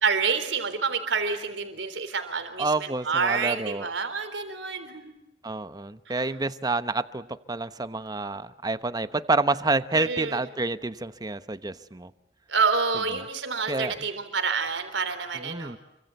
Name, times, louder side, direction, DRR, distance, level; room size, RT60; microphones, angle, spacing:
voice 1, 0.0-5.2 6.1-6.2 9.9-10.4 12.5-15.7, right 5 dB, 90° right, 8 dB, 3.7 m, -28 dB
voice 2, 2.6-3.9 5.4-12.1 13.7-13.9 15.3-15.8, right 3 dB, 20° right, 13 dB, 1.0 m, -28 dB
29.5 x 24.5 x 8.3 m, 0.88 s
head